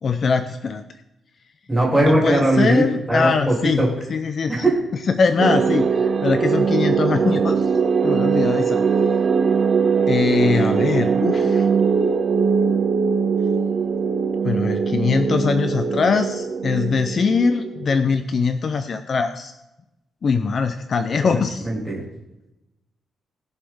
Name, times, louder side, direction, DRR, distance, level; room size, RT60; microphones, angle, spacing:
voice 1, 0.0-0.8 2.0-4.6 5.1-7.7 8.0-8.8 10.1-11.7 14.4-19.5 20.2-21.7, left 5 dB, 40° left, 9 dB, 0.6 m, -22 dB
voice 2, 1.7-2.8 3.1-3.9 4.5-4.8 21.1-21.3 21.6-22.0, right 2 dB, 5° right, -3 dB, 3.2 m, -19 dB
sound 1, 5.4-18.2, right 5 dB, 40° right, 0.6 m, -21 dB
19.5 x 7.0 x 3.6 m, 0.94 s
wide cardioid pair, 160°, 0 cm